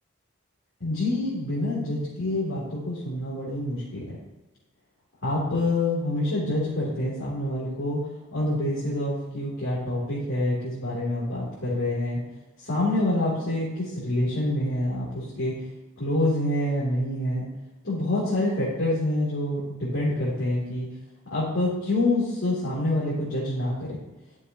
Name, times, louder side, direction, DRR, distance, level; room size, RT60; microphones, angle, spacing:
voice 1, 0.8-4.1 5.2-8.0 8.3-12.2 12.6-15.5 16.0-17.5 17.8-20.9 21.2-24.0, left 1 dB, 75° left, -9 dB, 3.4 m, -26 dB
12.0 x 7.2 x 3.1 m, 1.1 s
head